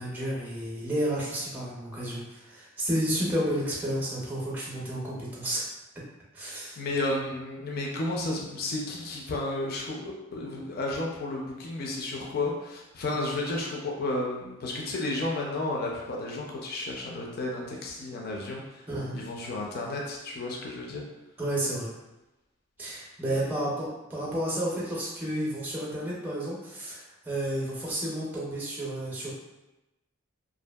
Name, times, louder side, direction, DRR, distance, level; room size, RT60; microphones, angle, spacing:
voice 1, 0.0-5.6 6.3-6.8 18.9-19.2 21.4-21.9 22.8-29.3, right 1 dB, 10° right, -5 dB, 0.5 m, -31 dB
voice 2, 6.8-18.8 19.1-21.0 23.3-23.5, left 2 dB, 45° left, -1 dB, 0.4 m, -32 dB
2.6 x 2.4 x 2.2 m, 0.99 s
head